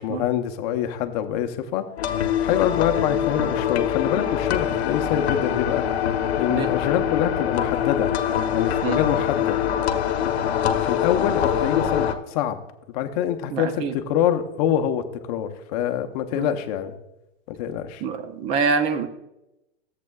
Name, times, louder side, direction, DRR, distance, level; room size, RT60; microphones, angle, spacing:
voice 1, 0.0-1.9 2.4-5.9 6.4-8.1 8.5-9.6 10.8-12.6 12.9-16.9 17.5-18.0 19.0-19.1, left 10 dB, 40° left, 7 dB, 0.8 m, -25 dB
sound 1, 2.0-12.1, left 9 dB, 85° left, 0.9 m, -24 dB
voice 2, 13.5-13.9 16.3-16.5 18.0-19.1, right 5 dB, 20° right, 9 dB, 0.4 m, -25 dB
13.5 x 7.7 x 2.3 m, 0.90 s
supercardioid pair, 155°, 31 cm